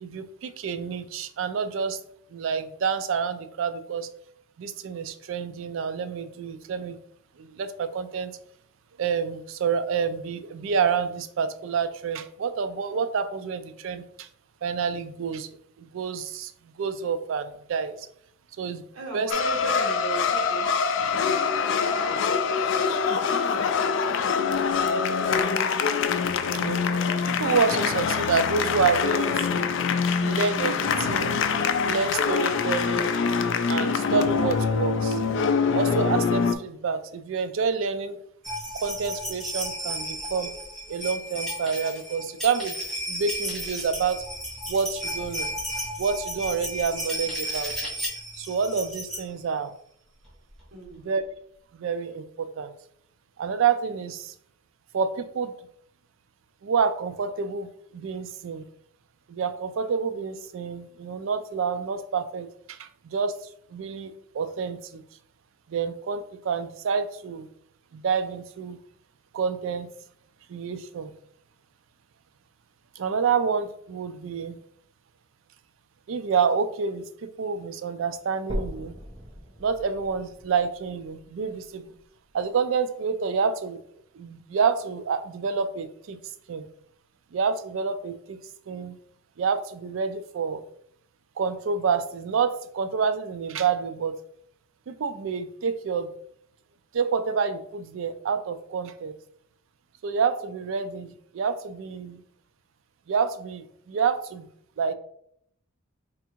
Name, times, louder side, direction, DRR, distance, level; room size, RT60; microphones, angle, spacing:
voice 1, 0.0-2.0 2.3-4.1 4.6-7.0 7.4-8.4 9.0-14.3 14.6-15.5 15.8-18.1 18.6-18.8 19.1-19.3 26.5-26.8 27.3-29.7 30.2-31.4 31.8-33.2 33.7-35.2 35.7-38.2 38.7-40.5 40.9-42.8 43.1-44.2 44.7-45.5 46.0-47.7 48.4-49.7 51.0-51.2 51.7-52.7 53.4-54.3 54.9-55.5 56.6-58.6 59.3-63.4 63.7-65.0 65.7-67.5 67.9-68.8 69.3-69.9 70.5-71.1 73.0-74.5 76.1-78.9 79.6-81.9 82.3-83.8 84.1-86.2 86.5-86.7 87.3-88.4 88.7-89.0 89.4-90.6 91.4-94.2 94.9-96.1 96.9-99.2 100.0-102.2 103.1-104.5 104.8-104.9, right 6 dB, 65° right, 11 dB, 0.4 m, -28 dB
voice 2, 18.9-20.7 21.7-21.9 22.1-22.5 50.7-51.0, right 2 dB, 85° right, 0 dB, 1.2 m, -37 dB
sound 1, 19.3-36.6, left 5 dB, 60° left, 0.3 m, -24 dB
sound 2, 38.4-49.2 50.3-50.4 50.5-50.6, equal, ahead, 1.1 m, -33 dB
sound 3, 78.5-82.5 83.1-83.2 83.7-83.8 84.2-84.3 85.1-85.2, equal, 25° right, 0.7 m, -39 dB
3.5 x 2.5 x 4.4 m, 0.68 s
head